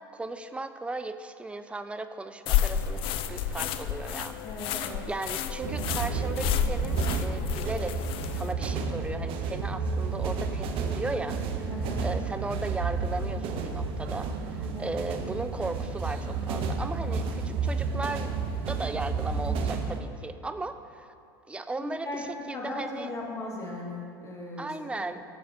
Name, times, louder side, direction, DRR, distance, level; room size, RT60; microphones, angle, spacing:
voice 1, 0.1-8.1 8.3-18.3 18.7-21.1 21.5-23.1 24.6-25.2, right 2 dB, 10° right, 10 dB, 0.4 m, -36 dB
sound 1, 2.5-8.5, left 10 dB, 50° left, 0.4 m, -31 dB
voice 2, 4.4-5.0 11.7-12.1 14.7-15.0 21.8-24.7, left 2 dB, 25° left, -2 dB, 1.8 m, -37 dB
sound 2, 5.6-20.0, right 4 dB, 50° right, 0.8 m, -31 dB
12.5 x 6.7 x 2.6 m, 2.4 s
hypercardioid pair, 80°, 12 cm